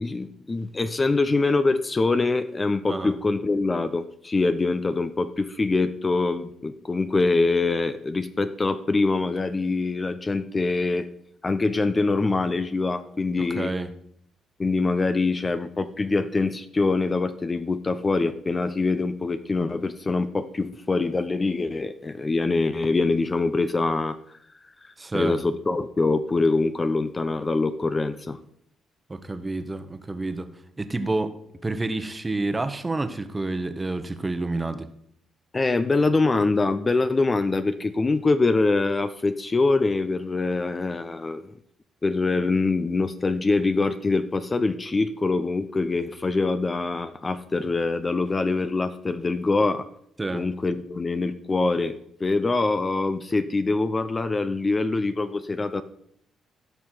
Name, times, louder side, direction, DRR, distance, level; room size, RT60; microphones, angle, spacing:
voice 1, 0.0-11.1 11.4-13.7 14.6-24.4 24.6-28.4 35.5-41.4 42.0-49.9 50.3-55.8, left 3 dB, 25° left, 11 dB, 0.6 m, -24 dB
voice 2, 13.4-13.9 25.0-25.4 29.1-30.5 30.8-31.3 31.6-34.9 50.2-50.4, right 2 dB, 20° right, 9 dB, 1.1 m, -29 dB
16.5 x 5.6 x 4.5 m, 0.71 s
cardioid pair, 90°, 0 cm